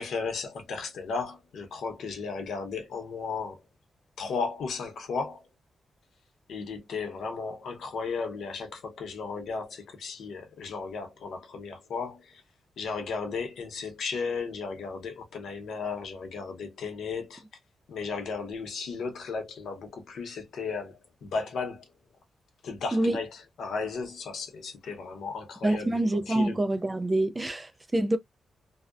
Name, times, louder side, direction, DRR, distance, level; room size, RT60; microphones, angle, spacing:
voice 1, 0.0-3.6 4.2-5.4 6.5-12.4 12.8-17.4 17.9-21.9 22.6-23.3 23.6-26.6, left 4 dB, 80° left, 0.8 m, -35 dB
voice 2, 25.6-28.2, right 1 dB, 15° right, 0.3 m, -26 dB
2.7 x 2.0 x 2.3 m
wide cardioid pair, 175°, 0 cm